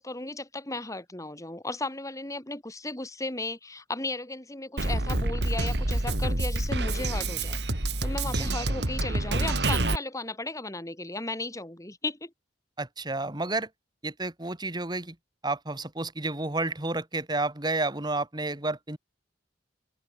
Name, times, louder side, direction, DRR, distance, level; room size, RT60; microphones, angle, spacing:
voice 1, 0.0-12.3, left 2 dB, 20° left, 2.9 m, -35 dB
Drum kit, 4.8-10.0, right 2 dB, 70° right, 2.9 m, -27 dB
voice 2, 12.8-13.7 14.0-15.2 15.4-19.0, right 2 dB, 25° right, 2.3 m, -31 dB
head